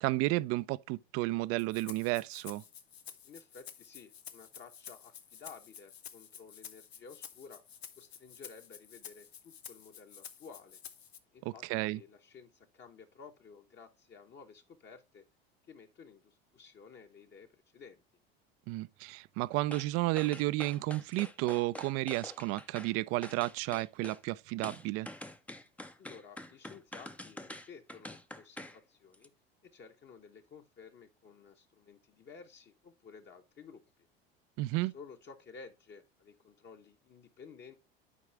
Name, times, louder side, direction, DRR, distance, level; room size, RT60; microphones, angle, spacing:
voice 1, 0.0-2.6 11.4-12.0 18.7-25.1 34.6-34.9, right 19 dB, 50° right, 0.5 m, -32 dB
Rattle (instrument), 1.6-11.2, left 8 dB, 85° left, 0.8 m, -51 dB
voice 2, 3.2-7.6 8.0-10.8 11.3-15.2 15.6-18.0 26.0-29.3 29.6-33.8 34.8-37.8, left 5 dB, 35° left, 1.2 m, -54 dB
sound 1, 19.7-19.9 20.2-22.9 23.2-24.2 24.6-28.8 29.1-29.3, left 1 dB, 5° left, 0.6 m, -46 dB
11.0 x 4.8 x 3.3 m
hypercardioid pair, 75°, 30 cm